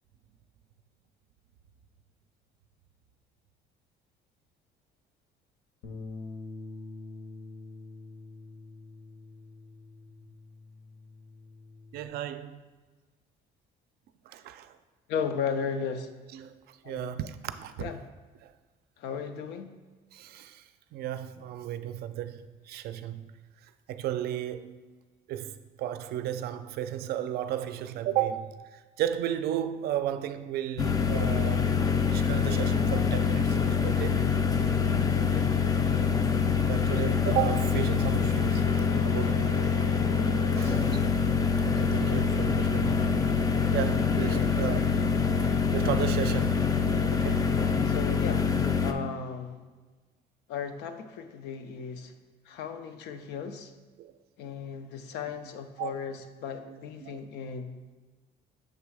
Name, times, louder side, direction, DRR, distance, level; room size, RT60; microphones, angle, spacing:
Bass guitar, 5.8-12.1, left 3 dB, 70° left, 1.0 m, -45 dB
voice 1, 11.9-12.6 14.3-14.7 16.3-16.5 16.9-17.7 18.4-18.5 20.1-20.6 20.9-23.3 23.9-24.8 25.3-31.7 32.1-34.3 36.7-39.6 40.5-40.8 41.7-43.1 43.7-45.1 45.7-46.7 47.1-47.5 54.0-54.1 55.8-55.9 56.7-57.2, right 11 dB, 70° right, 0.4 m, -34 dB
voice 2, 15.1-16.1 16.8-17.2 17.8-18.0 19.0-19.7 35.3-35.5 40.6-41.0 44.3-44.6 47.9-48.5 48.8-49.6 50.5-52.1 52.5-53.7 54.4-57.9, left 6 dB, 85° left, 0.5 m, -36 dB
sound 1, 30.8-48.9, left 6 dB, 20° left, 0.4 m, -25 dB
6.6 x 3.1 x 4.8 m
cardioid pair, 110°, 17 cm